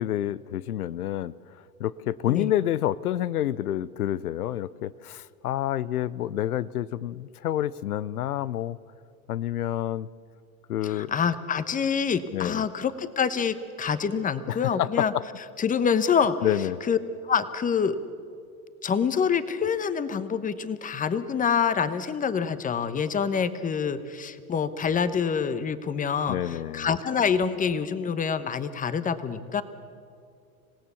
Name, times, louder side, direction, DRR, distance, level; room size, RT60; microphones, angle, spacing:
voice 1, 0.0-1.3 1.8-8.8 9.3-10.1 10.7-11.1 12.3-12.6 14.5-15.2 16.4-16.8 26.3-26.9, left 12 dB, 90° left, 19 dB, 0.6 m, -28 dB
voice 2, 10.8-15.1 15.6-16.3 16.9-17.0 17.2-18.0 18.8-29.6, left 6 dB, 20° left, 13 dB, 1.0 m, -26 dB
26.5 x 17.0 x 7.0 m, 2.4 s
hypercardioid pair, 100°, 43 cm